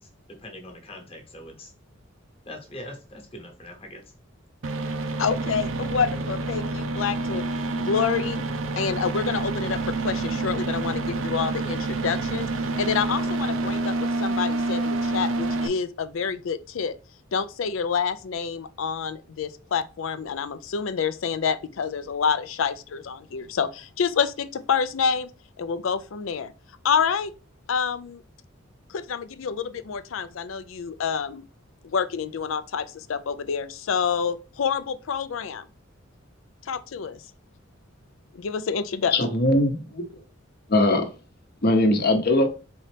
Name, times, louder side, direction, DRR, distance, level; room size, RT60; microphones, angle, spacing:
voice 1, 0.0-1.7 2.5-4.0, left 1 dB, 30° left, 1.1 m, -42 dB
sound 1, 4.6-15.7, right 2 dB, 85° right, 0.6 m, -28 dB
voice 2, 5.2-7.4 7.8-8.4 8.8-12.5 12.8-16.9 17.3-25.3 25.6-26.5 26.8-27.3 27.7-28.2 28.9-31.4 31.8-35.7 36.6-37.2 38.3-39.1, left 6 dB, 80° left, 0.4 m, -28 dB
voice 3, 39.1-40.0 40.7-41.1 41.6-42.5, left 1 dB, 50° left, 0.8 m, -20 dB
4.2 x 3.9 x 3.3 m
head